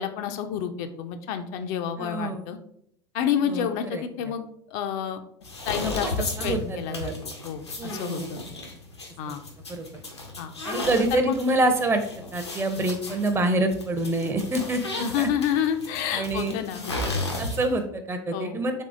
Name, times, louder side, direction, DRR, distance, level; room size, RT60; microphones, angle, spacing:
voice 1, 0.0-2.6 3.1-5.2 5.7-8.4 9.2-9.4 10.4-10.5 10.8-11.4 15.0-17.2 18.3-18.6, left 8 dB, 50° left, 8 dB, 0.4 m, -29 dB
voice 2, 2.0-2.4 3.4-4.0 5.8-5.9 6.4-7.1 7.8-8.3 9.3-9.4 9.7-9.9 10.6-12.0 12.3-15.3 16.1-16.5 17.4-18.8, right 2 dB, 20° right, 7 dB, 0.5 m, -26 dB
sound 1, 5.4-17.8, left 2 dB, 90° left, 0.6 m, -34 dB
3.5 x 3.3 x 2.5 m, 0.70 s
figure-of-eight pair, 70°, 14 cm